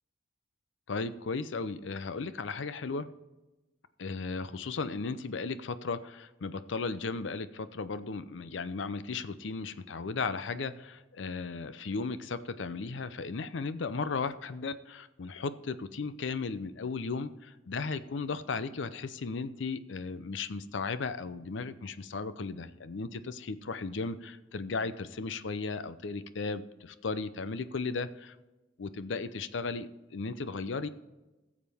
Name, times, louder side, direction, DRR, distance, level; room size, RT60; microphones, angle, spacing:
voice 1, 0.9-3.1 4.0-28.3 28.8-30.9, left 4 dB, 75° left, 13 dB, 0.6 m, -36 dB
17.0 x 7.3 x 3.5 m, 1.1 s
head